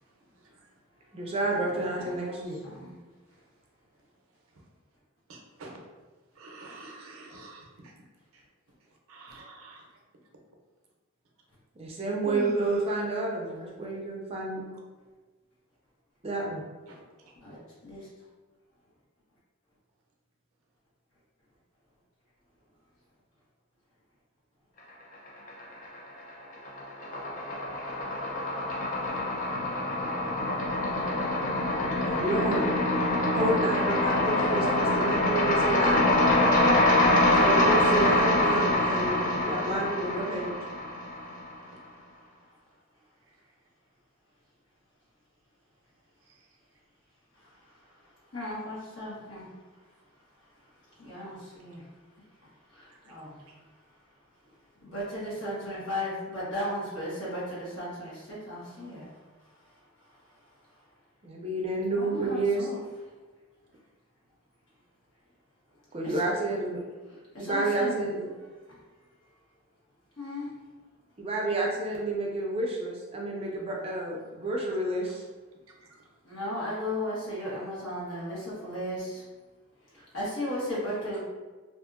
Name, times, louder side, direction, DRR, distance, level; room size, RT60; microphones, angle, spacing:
voice 1, 1.1-2.6 11.8-14.6 16.2-16.6 32.0-32.7 33.3-36.1 36.8-37.0 37.4-40.5 61.2-62.7 65.9-66.8 67.4-68.3 71.2-75.2, right 2 dB, 25° right, -2 dB, 0.4 m, -30 dB
voice 2, 1.7-2.9 9.3-9.4 17.4-18.1 48.3-49.5 51.0-51.8 52.7-53.4 54.8-59.1 62.0-62.8 66.0-66.1 67.3-68.0 70.2-70.5 76.2-79.2 79.9-81.2, left 1 dB, 60° left, -7 dB, 1.1 m, -35 dB
voice 3, 5.3-5.8 6.4-7.7 9.1-9.8 12.2-12.9 16.9-17.0, right 1 dB, 80° right, 0 dB, 0.5 m, -41 dB
sound 1, 25.3-26.0 26.3-41.5, left 1 dB, 40° left, 0.4 m, -25 dB
2.6 x 2.5 x 2.4 m, 1.3 s
head